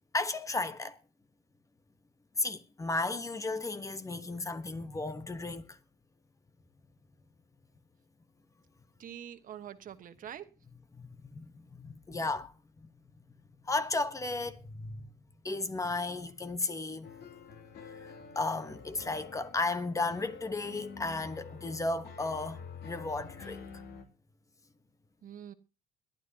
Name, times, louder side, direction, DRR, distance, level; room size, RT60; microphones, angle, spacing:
voice 1, 0.1-1.0 2.4-5.8 10.9-12.5 12.8-12.9 13.6-15.1 15.4-17.1 17.9-23.8, left 3 dB, 20° left, 1.2 m, -34 dB
voice 2, 9.0-10.5 25.2-25.5, right 10 dB, 55° right, 1.4 m, -45 dB
sound 1, 17.0-24.0, left 5 dB, 70° left, 2.7 m, -48 dB
21.5 x 12.5 x 2.9 m
cardioid pair, 110°, 17 cm